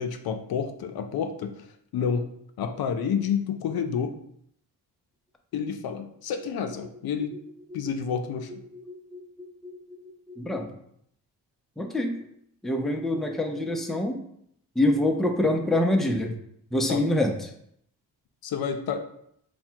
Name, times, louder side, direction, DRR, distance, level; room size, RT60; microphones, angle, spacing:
voice 1, 0.0-1.7 1.9-2.3 2.6-4.1 5.5-7.4 7.7-8.6 16.9-17.0 18.4-19.0, left 7 dB, 65° left, 7 dB, 0.5 m, -29 dB
voice 2, 8.7-10.7 11.8-12.2 12.6-14.2 14.8-16.4 16.7-17.5, left 1 dB, ahead, 3 dB, 0.5 m, -26 dB
3.5 x 2.2 x 4.4 m, 0.70 s
cardioid pair, 65°, 40 cm